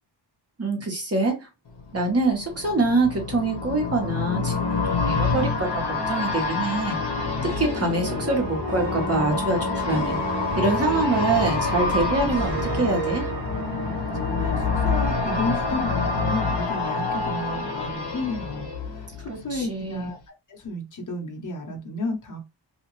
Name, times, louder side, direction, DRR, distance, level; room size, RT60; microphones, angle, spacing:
voice 1, 0.6-1.5 1.9-7.0 7.6-10.2 10.6-13.2 19.3-20.1, right 2 dB, 30° right, 1.3 m, -25 dB
sound 1, 1.8-19.6 19.9-20.0, left 4 dB, 60° left, 1.2 m, -28 dB
sound 2, 7.5-17.5, right 1 dB, 45° right, 0.9 m, -32 dB
voice 2, 13.8-20.2 20.5-22.4, left 2 dB, 40° left, 1.0 m, -32 dB
2.8 x 2.4 x 3.1 m
wide cardioid pair, 100°, 46 cm